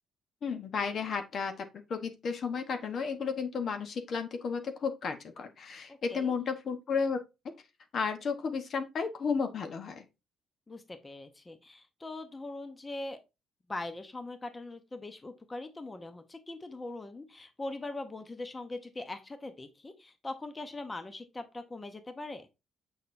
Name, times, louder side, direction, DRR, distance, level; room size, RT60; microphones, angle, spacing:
voice 1, 0.4-1.5 1.9-7.2 7.9-10.0, left 5 dB, 55° left, 1.0 m, -33 dB
voice 2, 5.9-6.3 10.7-13.2 13.7-22.5, left 2 dB, 20° left, 0.8 m, -41 dB
6.5 x 5.5 x 2.6 m
cardioid pair, 90°, 0 cm